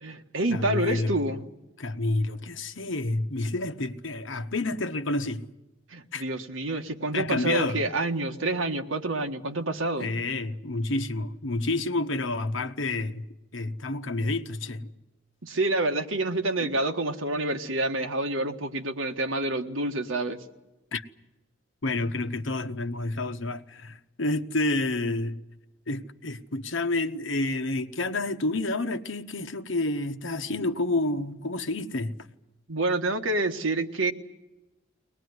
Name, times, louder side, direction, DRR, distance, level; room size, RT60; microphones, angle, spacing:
voice 1, 0.0-1.5 5.9-10.1 15.4-20.4 32.7-34.1, right 2 dB, 80° right, 1.6 m, -28 dB
voice 2, 0.5-1.1 1.8-5.5 6.1-6.2 7.1-7.8 10.0-13.3 13.5-14.9 20.9-21.0 21.8-25.4 25.9-32.1, left 2 dB, 70° left, 1.2 m, -29 dB
22.5 x 19.5 x 9.6 m
head